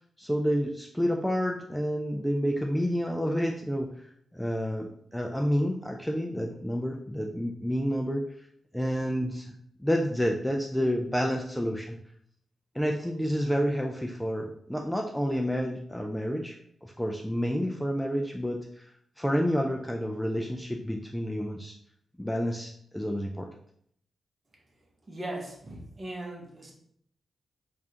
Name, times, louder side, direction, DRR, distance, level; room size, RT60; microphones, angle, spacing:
voice 1, 0.2-3.9 4.3-8.2 8.7-9.5 9.8-12.0 12.8-18.9 19.2-21.7 22.2-23.5, equal, 5° left, 1 dB, 0.3 m, -29 dB
voice 2, 25.1-26.7, right 1 dB, 30° right, 0 dB, 0.9 m, -38 dB
4.7 x 2.4 x 2.8 m, 0.67 s
wide cardioid pair, 105°, 0 cm